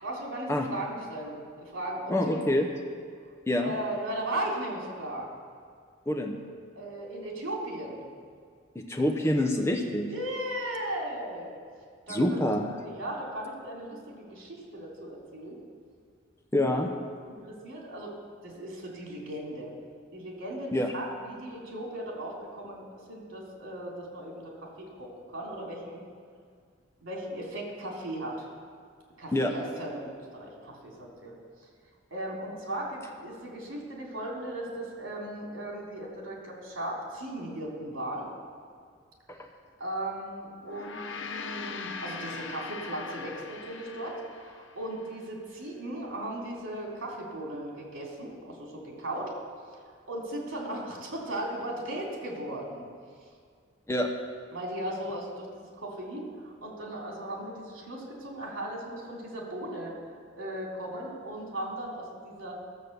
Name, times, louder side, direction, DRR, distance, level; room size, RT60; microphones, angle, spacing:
voice 1, 0.0-2.8 3.6-5.3 6.7-8.0 10.1-11.5 12.1-12.3 12.8-15.6 17.2-18.1 18.4-19.7 20.1-26.0 27.0-28.5 29.2-31.3 32.1-38.3 39.8-49.3 49.8-52.9 54.5-59.9 60.4-62.6, right 1 dB, 75° right, -2 dB, 3.2 m, -37 dB
voice 2, 2.1-2.7 3.5-3.7 6.1-6.4 8.7-10.1 12.1-12.7 16.5-16.9 20.7-20.9 29.3-29.5 39.3-39.4 53.9-54.1, left 1 dB, 15° left, 3 dB, 0.8 m, -26 dB
Gong, 40.6-45.2, left 4 dB, 70° left, 0.7 m, -40 dB
14.5 x 7.5 x 6.8 m, 2.1 s
head